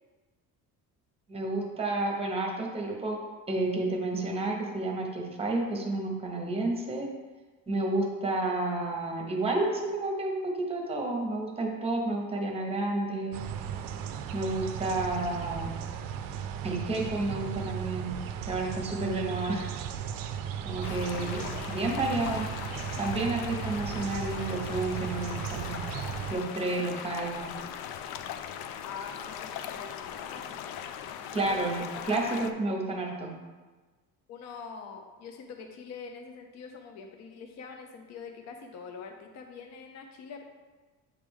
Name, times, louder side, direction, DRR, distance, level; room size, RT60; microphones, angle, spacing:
voice 1, 1.3-3.2 3.5-7.1 7.7-13.4 14.3-15.7 16.6-18.2 18.5-19.7 20.6-21.4 21.7-22.5 23.0-25.8 26.3-27.5 31.3-31.8 32.1-32.2 32.6-33.3, right 2 dB, 15° right, 0 dB, 0.9 m, -30 dB
sound 1, 13.3-26.3, right 8 dB, 65° right, 0.5 m, -36 dB
sound 2, 20.8-32.5, left 9 dB, 90° left, 0.5 m, -39 dB
voice 2, 21.0-21.5 28.8-30.8 31.3-32.5 32.8-32.9 34.3-40.5, left 5 dB, 45° left, 4 dB, 0.6 m, -44 dB
8.5 x 3.3 x 3.6 m, 1.3 s
cardioid pair, 155°, 37 cm